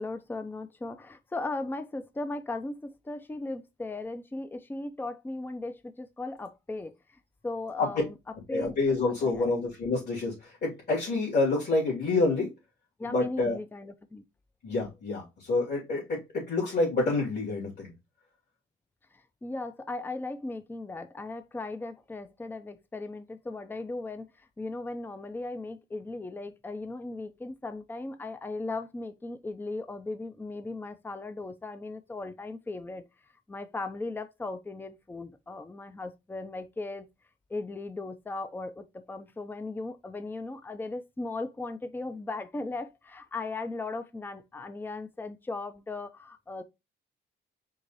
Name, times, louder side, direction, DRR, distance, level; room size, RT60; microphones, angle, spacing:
voice 1, 0.0-8.1 8.5-8.8 9.2-9.5 13.0-14.2 19.1-33.0 33.5-37.1 37.5-46.6, left 2 dB, 10° left, 0.5 m, -37 dB
voice 2, 8.5-12.5 13.0-13.6 14.6-17.9, left 3 dB, 55° left, 2.6 m, -28 dB
4.7 x 2.6 x 4.0 m
cardioid pair, 90°, 20 cm